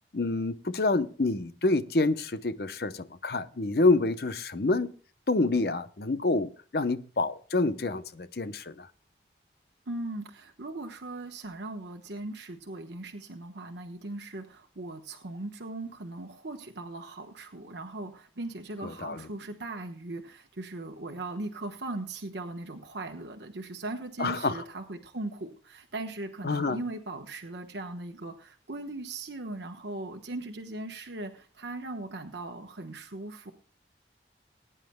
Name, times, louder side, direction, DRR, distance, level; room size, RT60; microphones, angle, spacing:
voice 1, 0.1-4.9 5.3-8.9 18.8-19.2 24.2-24.6 26.4-26.8, left 3 dB, 60° left, 0.8 m, -27 dB
voice 2, 9.9-33.5, right 2 dB, 75° right, 1.2 m, -39 dB
20.5 x 9.9 x 2.2 m
head